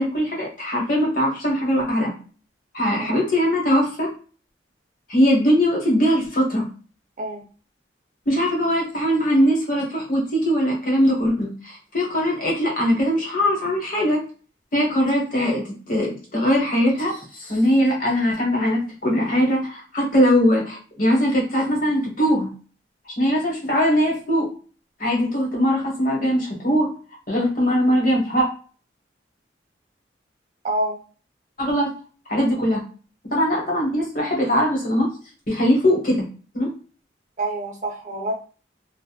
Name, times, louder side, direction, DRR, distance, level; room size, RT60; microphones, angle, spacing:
voice 1, 0.0-2.1 2.7-4.1 5.1-6.7 8.3-14.2 14.7-22.5 23.2-24.5 25.0-26.9 27.3-28.5 31.6-31.9 32.3-32.8 33.3-35.1 35.5-36.2 36.5-36.7, equal, 45° left, -2 dB, 1.1 m, -21 dB
voice 2, 30.6-31.0 37.4-38.3, right 1 dB, 40° right, 1 dB, 0.6 m, -27 dB
2.9 x 2.3 x 2.3 m, 0.37 s
head